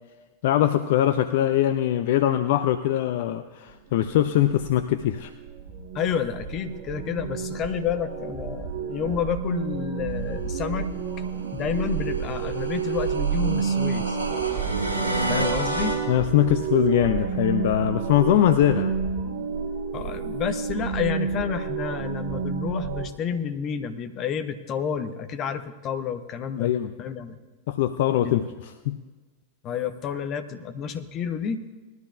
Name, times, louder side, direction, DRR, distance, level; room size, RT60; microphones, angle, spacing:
voice 1, 0.4-5.3 16.1-18.9 26.6-26.9 27.7-29.0, left 12 dB, 55° left, 10 dB, 0.4 m, -22 dB
sound 1, 3.7-23.1, right 7 dB, 50° right, 1.3 m, -30 dB
voice 2, 5.9-10.9 11.5-14.2 15.3-16.0 19.9-26.7 27.0-27.4 28.2-28.4 29.6-31.7, left 7 dB, 35° left, 9 dB, 0.9 m, -30 dB
sound 2, 11.1-16.0, right 1 dB, 80° right, 4.3 m, -30 dB
19.5 x 12.5 x 2.4 m, 1.3 s
figure-of-eight pair, 90°, 0 cm